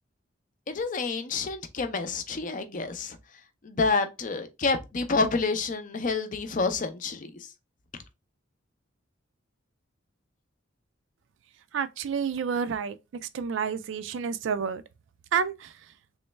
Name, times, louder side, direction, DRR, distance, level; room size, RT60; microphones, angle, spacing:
voice 1, 0.7-3.2 3.6-7.5, left 4 dB, 40° left, 0.5 m, -28 dB
voice 2, 11.7-13.0 13.3-14.8 15.3-15.7, right 6 dB, 65° right, 0.3 m, -29 dB
3.1 x 3.0 x 3.2 m
head